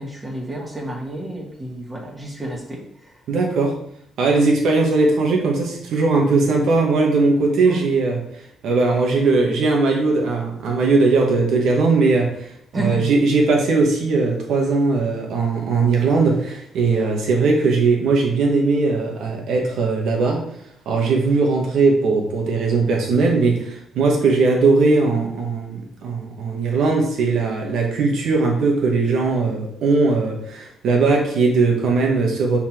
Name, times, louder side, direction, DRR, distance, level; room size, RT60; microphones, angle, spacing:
voice 1, 0.0-2.8 7.7-7.9 12.7-13.1, right 1 dB, 20° right, -1 dB, 2.1 m, -29 dB
voice 2, 3.3-3.8 4.2-8.2 8.6-20.4 20.9-32.6, right 3 dB, 75° right, 0 dB, 1.8 m, -19 dB
5.7 x 4.6 x 4.5 m, 0.71 s
cardioid pair, 90°, 0 cm